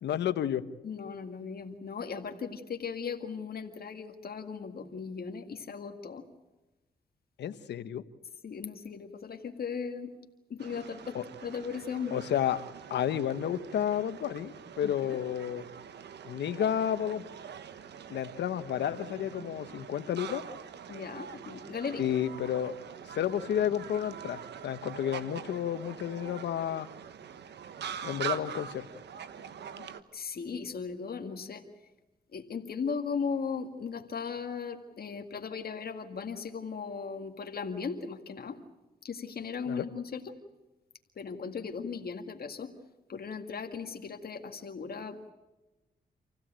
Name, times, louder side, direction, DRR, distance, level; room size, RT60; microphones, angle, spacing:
voice 1, 0.0-0.6 7.4-8.0 11.1-11.2 12.1-12.6 12.9-15.6 16.2-17.2 18.1-20.4 22.0-22.7 23.1-26.9 28.0-28.9 39.7-39.8, left 10 dB, 90° left, 12 dB, 1.1 m, -31 dB
voice 2, 0.8-6.2 8.4-10.1 10.5-12.2 14.8-15.2 20.9-22.1 29.8-31.6 32.3-38.6 39.0-40.3 41.2-42.7 43.1-45.3, left 5 dB, 60° left, 5 dB, 1.9 m, -37 dB
sound 1, 10.6-30.0, right 8 dB, 80° right, 1.2 m, -44 dB
27.5 x 16.0 x 9.0 m, 1.1 s
cardioid pair, 70°, 17 cm